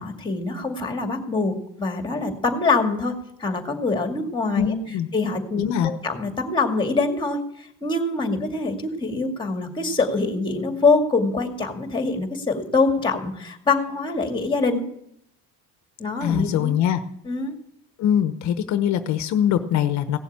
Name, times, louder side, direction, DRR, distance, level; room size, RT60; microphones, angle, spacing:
voice 1, 0.0-3.1 3.4-14.8 16.0-16.8 17.2-17.5, left 3 dB, 15° left, 5 dB, 2.2 m, -24 dB
voice 2, 4.5-5.1 5.6-5.9 16.2-17.0 18.0-20.2, left 9 dB, 60° left, 10 dB, 1.0 m, -22 dB
17.0 x 7.1 x 8.7 m, 0.75 s
cardioid pair, 120°, 32 cm